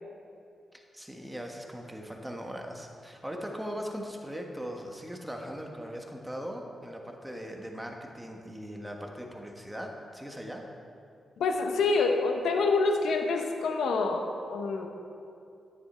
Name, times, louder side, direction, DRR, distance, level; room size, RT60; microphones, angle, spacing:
voice 1, 0.7-10.7, equal, 5° right, 1 dB, 1.4 m, -40 dB
voice 2, 11.4-14.9, left 3 dB, 85° left, 3 dB, 1.0 m, -27 dB
10.5 x 9.6 x 4.4 m, 2.6 s
cardioid pair, 85°, 0 cm